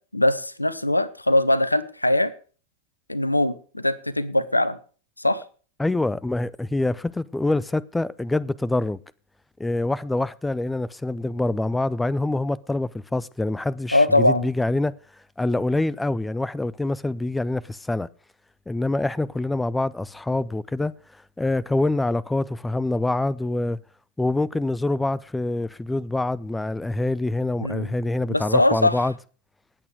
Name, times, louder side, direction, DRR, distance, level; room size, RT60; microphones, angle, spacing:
voice 1, 0.1-2.3 3.1-4.8 5.2-5.4 13.9-14.5 27.6-27.9 28.3-29.0, left 1 dB, 85° left, 0.9 m, -21 dB
voice 2, 5.8-9.0 9.6-14.9 15.4-18.1 18.7-23.8 24.2-29.1, left 2 dB, 5° left, 0.5 m, -25 dB
19.0 x 8.5 x 4.8 m
figure-of-eight pair, 90°, 0 cm